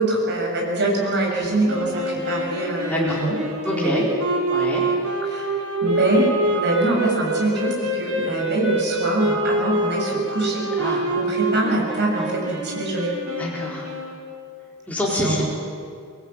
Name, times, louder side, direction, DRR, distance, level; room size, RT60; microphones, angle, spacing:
voice 1, 0.0-3.3 3.7-4.0 5.3-5.5 5.8-13.1 15.2-15.4, right 2 dB, 55° right, -1 dB, 7.4 m, -23 dB
sound 1, 1.7-14.3, right 1 dB, 75° right, 5.9 m, -26 dB
voice 2, 2.9-3.2 3.6-4.0 4.5-4.8 10.8-11.1 13.4-13.9 14.9-15.4, left 1 dB, 5° left, -5 dB, 4.4 m, -26 dB
25.5 x 19.5 x 9.1 m, 2.3 s
head